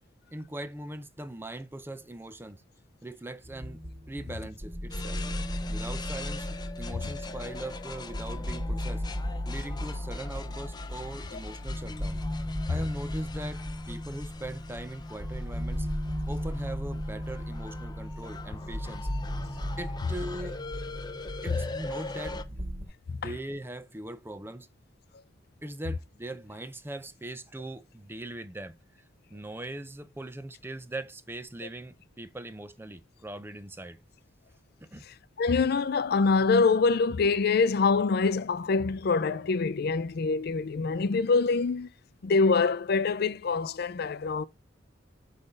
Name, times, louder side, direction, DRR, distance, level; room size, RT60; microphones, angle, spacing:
voice 1, 0.3-2.6 3.0-5.2 5.7-6.5 6.8-9.0 9.5-12.2 12.7-15.9 16.3-19.1 19.8-20.6 21.4-22.6 23.1-24.7 25.6-28.8 29.3-34.0 34.8-35.1, right 1 dB, 10° right, 0.5 m, -40 dB
sound 1, 3.4-22.8, equal, 30° right, 2.0 m, -36 dB
sound 2, 4.9-22.4, left 3 dB, 25° left, 0.7 m, -43 dB
voice 2, 35.4-41.9 42.2-44.4, left 4 dB, 55° left, 0.4 m, -25 dB
8.2 x 3.3 x 5.3 m
head